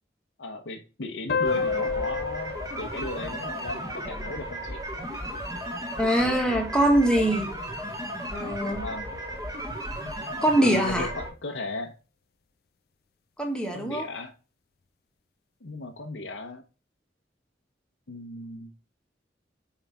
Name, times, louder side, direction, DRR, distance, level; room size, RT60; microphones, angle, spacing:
voice 1, 0.4-4.8 8.8-9.2 10.6-11.9 13.7-14.3 15.6-16.6 18.1-18.7, left 2 dB, 90° left, 0.9 m, -36 dB
sound 1, 1.3-4.4, left 5 dB, 55° left, 0.4 m, -31 dB
sound 2, 1.4-11.3, equal, 20° right, 1.5 m, -35 dB
voice 2, 6.0-7.5 8.3-8.9 10.4-11.1 13.4-14.1, right 1 dB, 5° left, 1.5 m, -23 dB
5.7 x 4.9 x 5.5 m
head